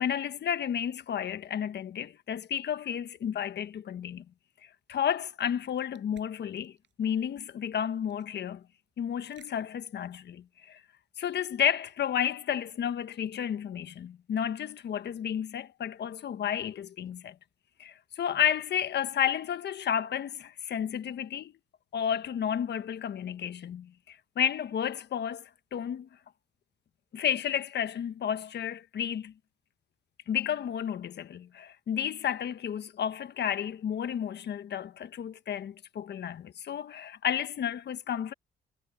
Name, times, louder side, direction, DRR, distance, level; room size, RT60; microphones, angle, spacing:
voice 1, 0.0-4.2 4.9-6.7 7.0-8.6 9.0-10.8 11.2-17.3 17.8-21.5 21.9-26.1 27.1-29.3 30.3-38.3, left 9 dB, 60° left, 1.3 m, -32 dB
sound 1, 5.3-10.5, right 10 dB, 65° right, 7.7 m, -63 dB
cardioid pair, 90°, 20 cm